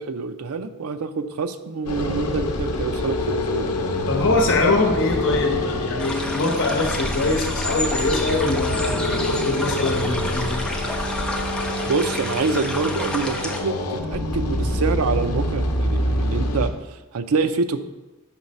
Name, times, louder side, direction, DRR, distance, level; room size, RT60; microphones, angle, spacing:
voice 1, 0.0-3.7 11.8-17.8, right 4 dB, 70° right, 10 dB, 0.5 m, -26 dB
sound 1, 1.9-16.7, left 1 dB, 80° left, 0.7 m, -26 dB
voice 2, 4.1-10.6, left 3 dB, 55° left, 2 dB, 1.0 m, -23 dB
sound 2, 6.0-13.6, left 1 dB, 5° left, 0.5 m, -30 dB
6.0 x 3.9 x 5.4 m, 1.1 s
head